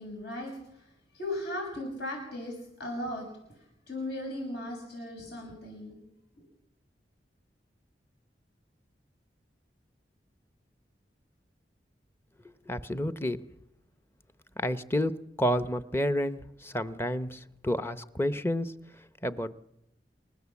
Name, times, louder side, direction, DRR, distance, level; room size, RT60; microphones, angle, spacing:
voice 1, 0.0-3.3 3.5-6.0, left 1 dB, 70° left, 6.6 m, -37 dB
voice 2, 12.7-13.4 14.6-18.7 19.2-19.5, equal, 15° left, 0.8 m, -30 dB
28.5 x 14.5 x 7.2 m
head